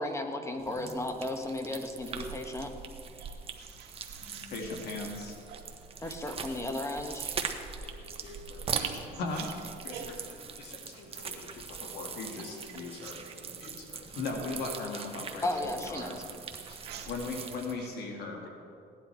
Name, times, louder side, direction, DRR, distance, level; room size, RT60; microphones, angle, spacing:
voice 1, 0.0-2.7 6.0-7.4 15.4-16.2, left 1 dB, 15° left, 5 dB, 1.3 m, -34 dB
sound 1, 0.6-17.8, right 6 dB, 35° right, 1.1 m, -41 dB
voice 2, 3.2-4.7 6.2-6.7 7.9-8.0 8.7-9.5 9.9-10.0 13.0-13.1 13.4-13.5 15.9-16.0 16.7-17.1 17.8-17.9, right 7 dB, 75° right, 2 dB, 1.7 m, -46 dB
voice 3, 4.5-5.4 6.0-6.3 7.8-9.5 9.8-16.2 16.7-16.8 17.1-18.5, left 3 dB, 75° left, 2 dB, 1.8 m, -39 dB
16.5 x 11.0 x 4.5 m, 2.4 s
cardioid pair, 110°, 17 cm